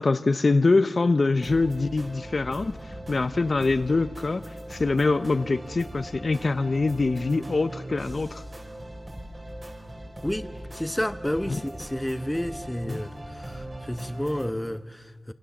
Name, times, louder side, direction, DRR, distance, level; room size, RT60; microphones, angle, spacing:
voice 1, 0.0-2.8 3.1-8.4 11.5-11.6 12.9-13.0, left 3 dB, 60° left, 0.8 m, -24 dB
sound 1, 1.4-14.5, right 1 dB, 35° right, 5.1 m, -40 dB
voice 2, 10.2-15.3, equal, 10° left, 1.1 m, -31 dB
27.0 x 26.5 x 7.3 m
wide cardioid pair, 75°, 0 cm